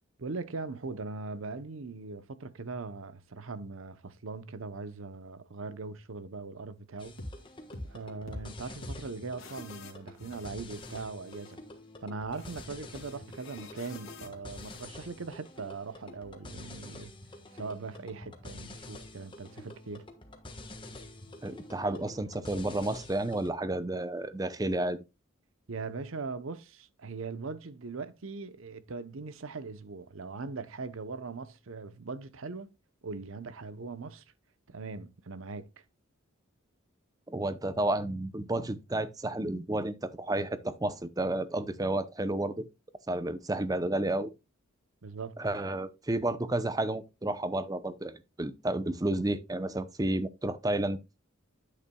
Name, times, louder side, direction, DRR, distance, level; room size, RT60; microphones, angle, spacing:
voice 1, 0.2-7.2 7.8-11.6 12.0-17.1 17.5-20.1 25.7-32.7 33.0-34.2 34.7-35.7 45.0-45.4, right 4 dB, 75° right, 0.8 m, -40 dB
sound 1, 7.0-23.5, left 1 dB, 25° left, 1.3 m, -48 dB
sound 2, 7.2-7.4 7.7-7.9 8.3-8.5 8.8-9.0 9.4-11.0 11.3-11.5 12.3-14.8, left 2 dB, 80° left, 2.2 m, -45 dB
voice 2, 21.4-25.0 37.3-42.7 43.1-44.3 45.4-51.0, right 1 dB, 15° right, 0.6 m, -31 dB
9.8 x 8.4 x 2.3 m
head